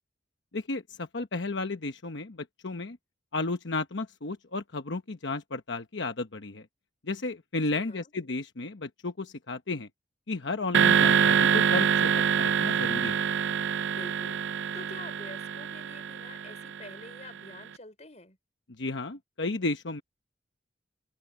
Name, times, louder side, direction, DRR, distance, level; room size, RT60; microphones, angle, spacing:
voice 1, 0.5-3.0 3.3-6.7 7.0-9.9 10.3-13.2 18.8-20.0, left 3 dB, 80° left, 1.1 m, -33 dB
voice 2, 7.7-8.1 13.8-18.4, left 2 dB, 35° left, 5.5 m, -48 dB
sound 1, 10.7-17.1, right 7 dB, 80° right, 0.5 m, -25 dB
open air
head